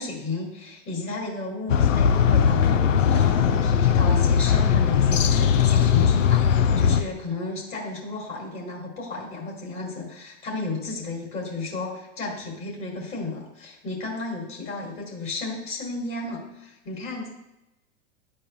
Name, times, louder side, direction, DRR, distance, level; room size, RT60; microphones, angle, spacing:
voice 1, 0.0-17.3, left 3 dB, 35° left, -1 dB, 2.0 m, -33 dB
sound 1, 1.7-7.0, left 7 dB, 80° left, 0.6 m, -19 dB
11.0 x 4.3 x 2.4 m, 0.92 s
hypercardioid pair, 95°, 38 cm